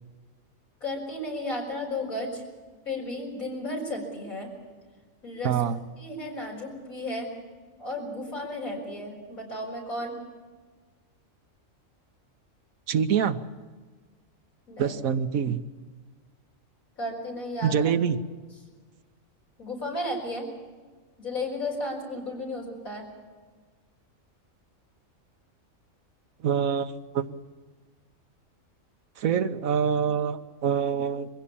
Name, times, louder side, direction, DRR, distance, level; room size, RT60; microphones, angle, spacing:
voice 1, 0.8-2.4 2.9-4.5 5.2-5.6 6.0-7.3 7.8-10.1 14.7-15.0 17.0-17.7 19.6-20.5 21.2-23.1, left 1 dB, 90° left, 0 dB, 5.8 m, -33 dB
voice 2, 5.4-5.8 12.9-13.4 14.8-15.6 17.6-18.2 26.4-27.3 29.2-31.3, right 7 dB, 85° right, 9 dB, 1.4 m, -25 dB
22.5 x 16.0 x 8.6 m, 1.4 s
omnidirectional pair, 1.4 m